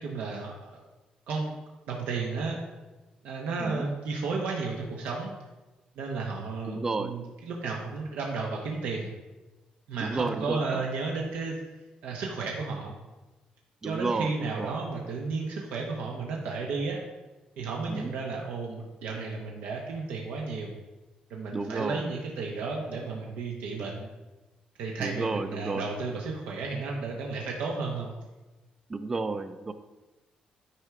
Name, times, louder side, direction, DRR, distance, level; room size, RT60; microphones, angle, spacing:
voice 1, 0.0-0.8 1.3-1.6 1.9-2.6 3.2-5.3 6.0-9.1 9.9-11.6 12.0-12.9 13.8-17.0 17.6-20.7 21.3-24.1 24.8-28.1, right 4 dB, 85° right, -1 dB, 0.9 m, -33 dB
voice 2, 6.7-7.1 10.0-10.8 13.8-14.7 17.9-18.1 21.5-22.1 25.0-25.9 28.9-29.7, right 3 dB, 20° right, 10 dB, 0.3 m, -32 dB
9.9 x 4.6 x 3.6 m, 1.1 s
cardioid pair, 175°, 3 cm